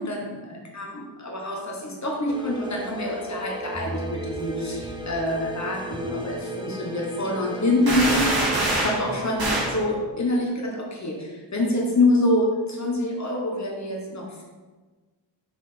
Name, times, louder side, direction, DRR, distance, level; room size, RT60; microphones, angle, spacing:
voice 1, 0.0-14.4, left 1 dB, 35° left, -1 dB, 1.2 m, -26 dB
sound 1, 2.3-9.9, right 2 dB, 10° right, 0.7 m, -35 dB
sound 2, 7.9-9.0 9.4-9.8, right 1 dB, 50° right, 1.9 m, -24 dB
6.3 x 5.0 x 5.1 m, 1.3 s
wide cardioid pair, 180°, 46 cm